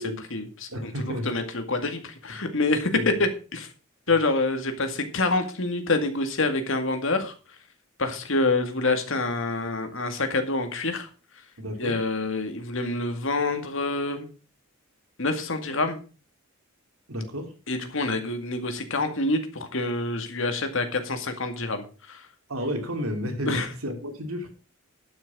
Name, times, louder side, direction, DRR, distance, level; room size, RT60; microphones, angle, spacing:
voice 1, 0.0-3.7 4.1-7.3 8.0-11.1 11.8-14.3 15.2-16.0 17.7-22.2 23.5-23.7, left 2 dB, 65° left, 2.1 m, -27 dB
voice 2, 0.7-1.3 2.9-3.2 4.1-4.2 11.6-12.0 17.1-17.5 22.5-24.5, equal, 85° right, 2.9 m, -32 dB
12.0 x 6.4 x 6.2 m
head